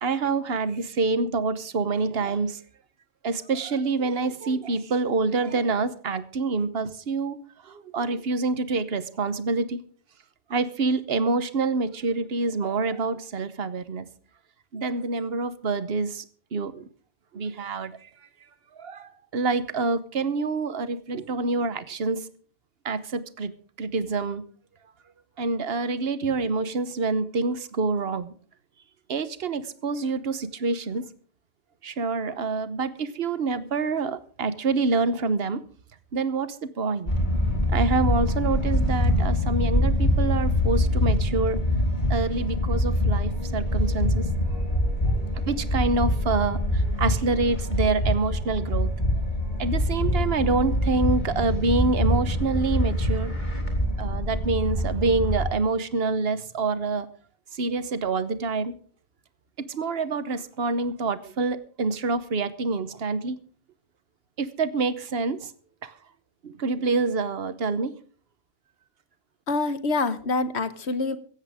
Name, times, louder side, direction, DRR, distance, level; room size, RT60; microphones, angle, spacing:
voice 1, 0.0-2.6 3.2-7.4 7.6-9.8 10.5-14.1 14.7-16.2 16.5-16.8 17.3-18.0 18.8-22.3 22.8-23.5 23.8-24.4 25.4-28.3 29.1-31.1 31.8-35.6 36.1-37.1 37.7-41.6 42.1-44.2 45.1-48.9 49.6-53.3 54.0-57.1 57.5-58.7 59.7-63.4 64.4-65.5 65.8-65.9 66.4-67.9, right 3 dB, 65° right, 14 dB, 1.3 m, -27 dB
sound 1, 37.1-55.5, left 1 dB, 45° left, 3.6 m, -24 dB
voice 2, 69.5-71.2, left 3 dB, 90° left, 13 dB, 1.5 m, -26 dB
17.0 x 14.5 x 3.6 m, 0.43 s
omnidirectional pair, 1.1 m